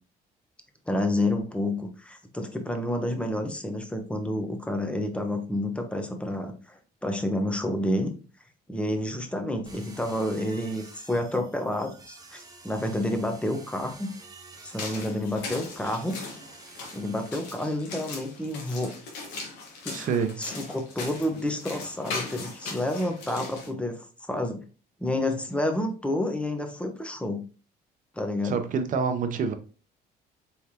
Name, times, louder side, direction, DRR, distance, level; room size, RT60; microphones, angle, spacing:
voice 1, 0.9-8.1 8.7-14.1 14.6-16.2 16.9-18.9 19.8-20.1 20.4-24.6 25.0-27.4 28.1-28.6, left 1 dB, 5° left, 0.9 m, -29 dB
sound 1, 9.6-17.3, right 3 dB, 20° right, 0.9 m, -49 dB
sound 2, 14.5-23.7, left 3 dB, 90° left, 1.3 m, -39 dB
voice 2, 19.9-20.5 28.4-29.5, right 6 dB, 50° right, 0.7 m, -27 dB
4.6 x 3.4 x 2.8 m
cardioid pair, 110°, 17 cm